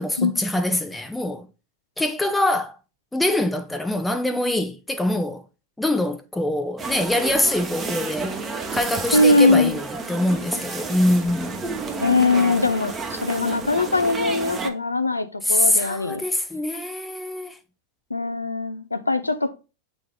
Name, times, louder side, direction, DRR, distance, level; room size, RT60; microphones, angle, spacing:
voice 1, 0.0-1.5 2.0-2.7 3.1-5.4 5.8-8.3 8.7-11.6 15.4-17.6, left 1 dB, 5° left, 0.6 m, -24 dB
sound 1, 6.8-14.7, right 4 dB, 20° right, 1.0 m, -31 dB
voice 2, 9.1-9.8 12.0-16.2 18.1-19.5, left 2 dB, 80° left, 0.6 m, -21 dB
7.6 x 3.5 x 3.9 m
figure-of-eight pair, 90°, 0 cm